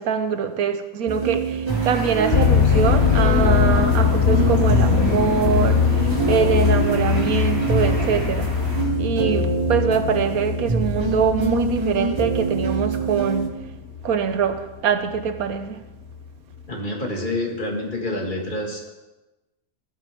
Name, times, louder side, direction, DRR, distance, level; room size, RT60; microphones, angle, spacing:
voice 1, 0.0-8.5 9.0-13.7 14.0-15.9, right 6 dB, 85° right, 1.4 m, -23 dB
sound 1, 1.1-13.5, right 3 dB, 25° right, 0.8 m, -26 dB
sound 2, 1.7-8.8, right 1 dB, 70° right, 5.3 m, -34 dB
sound 3, 2.3-14.6 15.1-15.5 16.1-16.2 16.5-16.6, left 7 dB, 50° left, 0.7 m, -22 dB
voice 2, 16.7-18.9, left 1 dB, 35° left, 2.0 m, -27 dB
15.5 x 12.0 x 3.5 m
omnidirectional pair, 1.5 m